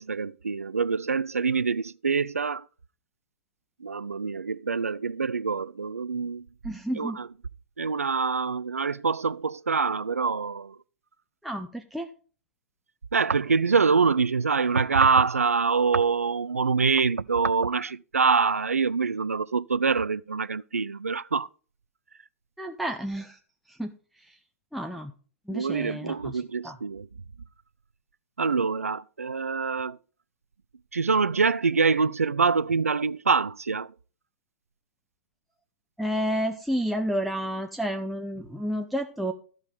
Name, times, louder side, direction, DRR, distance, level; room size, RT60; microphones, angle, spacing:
voice 1, 0.0-2.6 3.8-6.4 7.0-7.3 7.8-10.8 13.1-21.5 25.5-27.1 28.4-30.0 30.9-33.9, right 5 dB, 80° right, 0.4 m, -25 dB
voice 2, 6.6-7.2 11.4-12.1 22.6-23.4 23.7-23.9 24.3-24.4 24.7-25.1 25.5-26.8 36.0-39.3, equal, ahead, 0.6 m, -30 dB
14.0 x 5.2 x 5.0 m
figure-of-eight pair, 110°, 8 cm